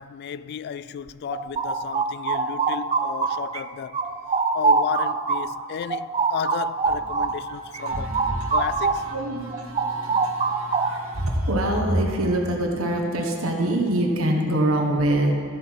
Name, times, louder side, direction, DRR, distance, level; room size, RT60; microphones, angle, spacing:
voice 1, 0.0-4.0 4.5-8.1 8.5-9.1, left 7 dB, 50° left, 0.3 m, -33 dB
sound 1, 1.1-3.6 3.9-9.1 9.5-11.2, right 4 dB, 30° right, 0.5 m, -25 dB
voice 2, 7.7-8.7 9.1-15.3, right 1 dB, 85° right, 1.4 m, -25 dB
13.5 x 7.8 x 4.7 m
head